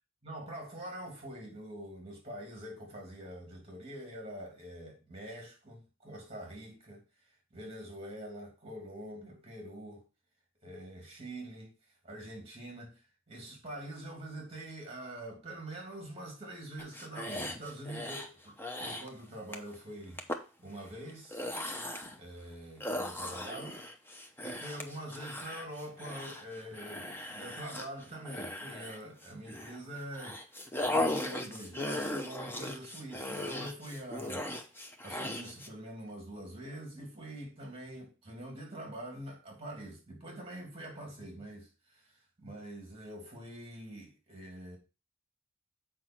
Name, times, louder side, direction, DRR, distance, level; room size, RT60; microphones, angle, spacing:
voice 1, 0.2-7.0 7.5-10.0 10.6-11.7 12.0-20.2 20.6-21.5 22.1-23.8 24.1-34.5 35.0-44.8, right 1 dB, 30° right, 2.6 m, -45 dB
sound 1, 16.8-18.3 18.6-19.1 19.5-19.7 20.2-20.4 21.1-22.2 22.8-29.8 30.1-35.7, left 1 dB, 10° left, 0.8 m, -37 dB
7.6 x 5.2 x 4.4 m
head